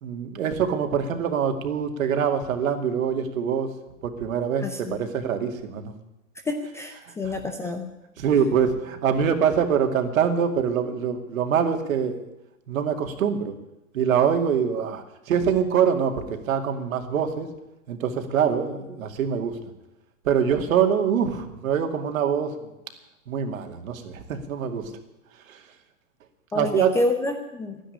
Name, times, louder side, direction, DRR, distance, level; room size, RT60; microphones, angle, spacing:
voice 1, 0.0-3.7 4.0-5.9 7.0-7.4 8.2-12.2 12.7-13.6 13.9-17.5 17.9-19.5 20.2-22.7 23.3-24.9 25.5-25.6 26.5-27.0, right 7 dB, 65° right, 6 dB, 2.3 m, -24 dB
voice 2, 4.6-5.0 6.5-7.9 26.5-27.8, left 2 dB, 5° left, 5 dB, 0.6 m, -28 dB
12.5 x 10.0 x 9.9 m, 0.94 s
hypercardioid pair, 140°, 43 cm